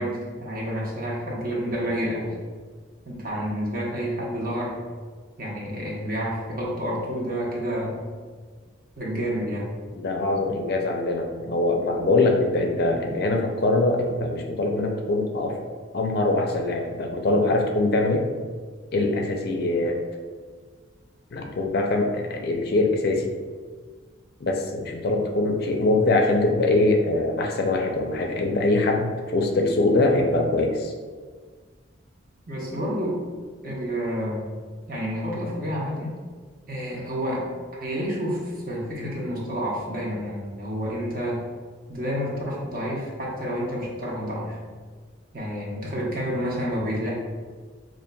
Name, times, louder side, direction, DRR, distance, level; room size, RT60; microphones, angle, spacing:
voice 1, 0.0-2.3 3.0-4.8 5.4-8.0 9.0-9.7 32.5-33.2 33.6-34.4 34.9-36.2 36.7-37.5 37.8-41.4 41.9-44.6 45.3-47.1, equal, 45° right, -5 dB, 0.9 m, -29 dB
voice 2, 10.0-15.5 15.9-18.2 18.9-20.0 21.3-23.2 24.4-30.9, left 2 dB, 50° left, 2 dB, 0.4 m, -23 dB
5.3 x 2.5 x 2.2 m, 1.5 s
head